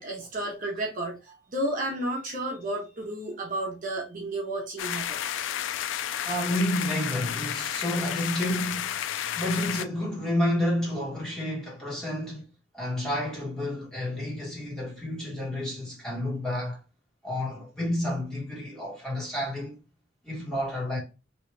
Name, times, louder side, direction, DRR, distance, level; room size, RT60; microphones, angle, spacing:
voice 1, 0.0-5.5, right 1 dB, 45° right, 1.0 m, -32 dB
sound 1, 4.8-9.8, left 10 dB, 85° left, 0.3 m, -32 dB
voice 2, 6.2-8.9 9.4-12.4 12.7-16.8 17.2-19.8 20.2-21.0, left 1 dB, 5° left, 1.7 m, -30 dB
3.1 x 3.0 x 3.2 m
head